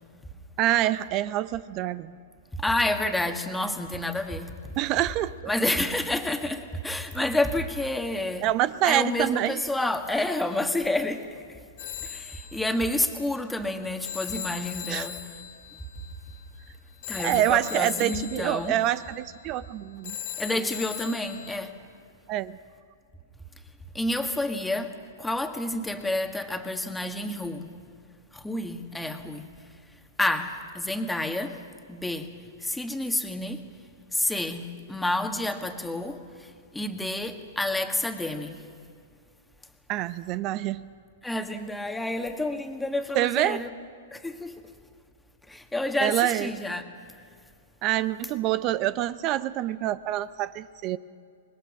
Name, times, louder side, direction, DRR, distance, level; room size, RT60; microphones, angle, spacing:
voice 1, 0.6-2.2 4.8-5.5 8.4-9.6 14.9-15.1 17.2-20.2 20.5-20.6 22.3-22.6 39.9-40.8 43.1-43.6 46.0-46.5 47.8-51.0, right 13 dB, 40° right, 15 dB, 0.6 m, -26 dB
voice 2, 2.5-4.5 5.5-8.5 8.8-11.4 12.0-15.2 17.1-18.7 20.4-21.7 23.9-27.7 28.3-29.5 30.2-31.6 31.9-32.3 32.6-33.6 34.1-38.6 41.2-43.7 44.1-44.6 45.5-46.8, left 1 dB, 5° left, 6 dB, 1.6 m, -29 dB
Telephone, 11.8-21.6, left 10 dB, 55° left, 2.2 m, -39 dB
25.5 x 20.5 x 6.1 m, 2.2 s
hypercardioid pair, 115°, 0 cm